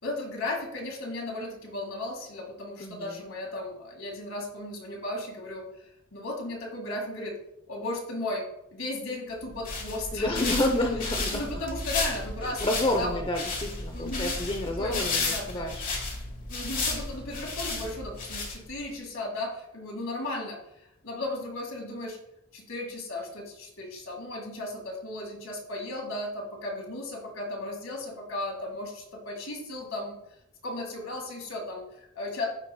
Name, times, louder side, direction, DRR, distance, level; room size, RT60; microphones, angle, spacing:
voice 1, 0.0-7.4 7.7-8.4 8.7-10.5 11.3-13.2 13.9-14.3 14.8-15.7 16.5-20.6 21.0-22.2 22.5-30.2 30.6-32.5, left 2 dB, 75° left, 0 dB, 2.0 m, -35 dB
voice 2, 2.8-3.2 10.1-11.4 12.4-15.8, left 1 dB, 25° left, 2 dB, 0.6 m, -29 dB
sound 1, 9.4-18.9, left 3 dB, 40° left, 1.5 m, -33 dB
14.5 x 4.9 x 2.2 m, 0.84 s
head